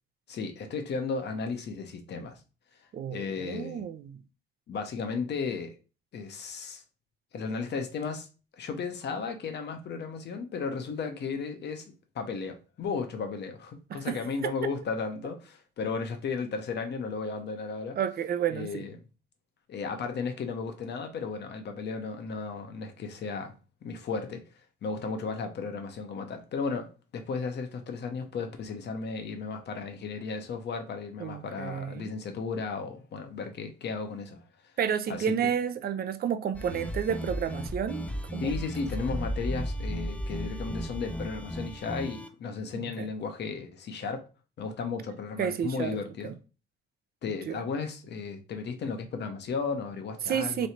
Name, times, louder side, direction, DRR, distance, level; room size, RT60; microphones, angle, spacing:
voice 1, 0.3-2.4 3.1-3.8 4.7-5.8 6.1-6.8 7.3-8.3 8.6-11.8 12.1-18.0 18.5-19.0 19.7-23.5 23.8-24.4 24.8-34.4 35.1-35.4 38.4-44.3 44.6-46.3 47.2-50.7, left 5 dB, 60° left, 0.9 m, -34 dB
voice 2, 2.9-4.2 13.9-14.2 18.0-18.8 31.2-32.1 34.8-38.1 38.3-38.5 42.7-43.1 45.4-46.0 46.2-46.4 47.5-47.6 50.2-50.7, right 8 dB, 50° right, 0.5 m, -31 dB
sound 1, 36.5-42.3, equal, 5° left, 0.4 m, -35 dB
3.1 x 2.7 x 4.3 m
cardioid pair, 90°, 20 cm